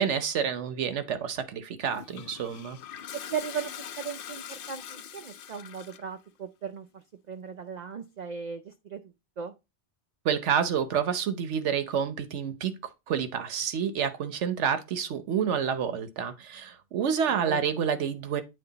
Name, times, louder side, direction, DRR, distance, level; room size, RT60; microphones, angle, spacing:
voice 1, 0.0-2.8 10.2-12.7 13.1-18.4, right 7 dB, 75° right, 1.1 m, -28 dB
Toilet flush, 1.9-6.2, left 9 dB, 60° left, 0.6 m, -42 dB
voice 2, 3.1-9.0 9.4-9.5 17.3-17.7, right 7 dB, 55° right, 0.5 m, -37 dB
9.0 x 3.3 x 3.9 m
omnidirectional pair, 1.2 m